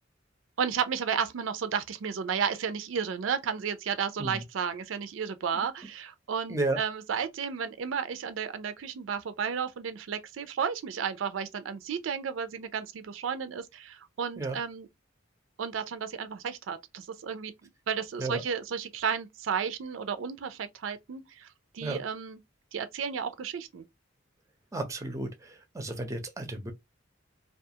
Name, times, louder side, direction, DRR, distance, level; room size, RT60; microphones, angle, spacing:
voice 1, 0.6-14.9 15.6-21.5 21.7-22.4 22.7-23.8, right 7 dB, 85° right, 0.4 m, -33 dB
voice 2, 24.7-26.7, right 2 dB, 15° right, 0.5 m, -33 dB
2.4 x 2.3 x 2.7 m
head